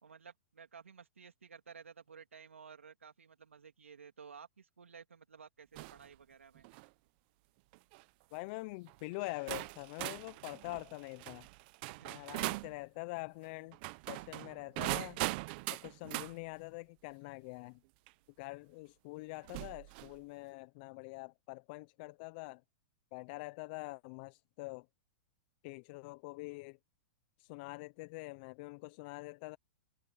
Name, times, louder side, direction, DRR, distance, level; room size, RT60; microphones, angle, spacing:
voice 1, 0.0-6.7 11.8-12.4, right 6 dB, 90° right, 3.3 m, -55 dB
sound 1, 5.8-6.1 6.6-6.9 7.7-8.0 8.9-9.0 9.5-12.7 13.7-16.3 18.1-18.2 19.4-20.2, right 24 dB, 50° right, 1.1 m, -40 dB
voice 2, 8.3-11.5 12.0-13.8 14.1-15.2 15.7-17.8 18.4-22.6 23.1-24.9 25.6-26.8 27.4-29.6, left 25 dB, 50° left, 0.8 m, -45 dB
hypercardioid pair, 115°, 7 cm